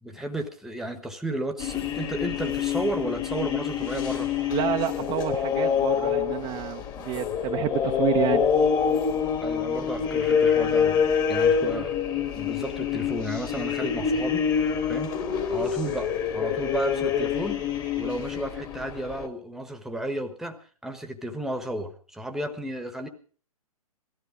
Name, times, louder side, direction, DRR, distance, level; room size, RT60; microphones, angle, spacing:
voice 1, 0.0-4.3 9.4-11.9 12.3-14.4 14.9-15.1 15.4-17.6 18.0-20.6 20.8-23.1, right 1 dB, ahead, 7 dB, 1.2 m, -33 dB
sound 1, 1.6-19.3, left 7 dB, 20° left, 1.5 m, -26 dB
voice 2, 4.5-8.5 8.9-9.1, right 12 dB, 25° right, 4 dB, 0.7 m, -29 dB
17.5 x 14.0 x 5.0 m, 0.41 s
figure-of-eight pair, 120°, 19 cm